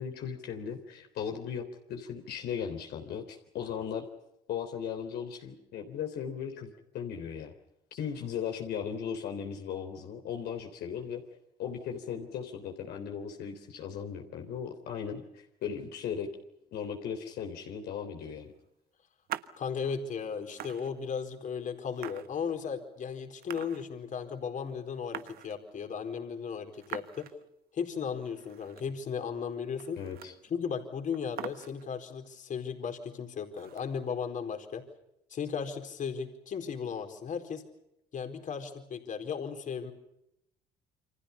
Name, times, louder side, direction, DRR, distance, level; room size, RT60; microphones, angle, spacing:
voice 1, 0.0-4.1 4.5-7.5 7.9-11.2 11.6-16.3 16.7-18.5 30.0-30.3, left 7 dB, 75° left, 4 dB, 3.6 m, -37 dB
sound 1, 19.3-19.6 20.2-20.3 20.5-21.3 22.0-22.9 23.4-24.2 24.4-24.5 24.7-25.9 26.7-27.5 27.8-27.9 28.2-29.0 29.3-29.4 29.7-30.5 30.8-30.9 31.1-32.0 33.5-34.2, right 12 dB, 65° right, 1.3 m, -44 dB
voice 2, 19.6-27.3 27.7-30.0 30.5-34.8 35.3-37.6 38.1-39.9, left 6 dB, 50° left, 5 dB, 4.4 m, -36 dB
29.5 x 25.5 x 5.6 m, 0.83 s
cardioid pair, 110°, 17 cm